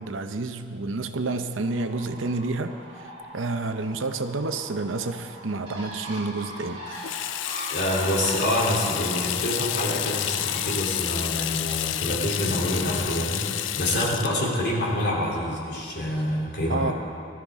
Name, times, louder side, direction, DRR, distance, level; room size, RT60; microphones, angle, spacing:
voice 1, 0.0-6.8 16.7-16.9, right 3 dB, 90° right, 8 dB, 0.8 m, -29 dB
Bird, 1.6-10.8, right 1 dB, 30° right, 3.6 m, -41 dB
Water tap faucet / Sink (filling or washing), 6.9-16.2, left 12 dB, 75° left, 0.4 m, -30 dB
voice 2, 7.7-16.9, left 1 dB, 55° left, -4 dB, 3.2 m, -26 dB
19.5 x 13.0 x 3.6 m, 2.5 s
head